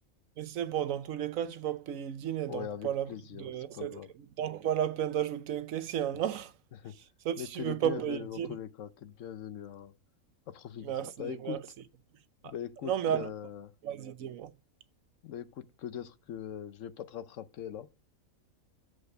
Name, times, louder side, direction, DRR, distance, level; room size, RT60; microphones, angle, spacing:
voice 1, 0.4-6.6 7.2-8.6 10.8-11.6 12.4-12.5 12.8-13.3 13.8-14.5, right 10 dB, 70° right, 1.1 m, -33 dB
voice 2, 2.5-4.1 6.7-6.9 7.4-9.9 10.5-10.9 11.2-11.6 12.4-13.7 15.2-17.9, left 9 dB, 65° left, 1.0 m, -41 dB
7.9 x 4.1 x 6.5 m
omnidirectional pair, 1.5 m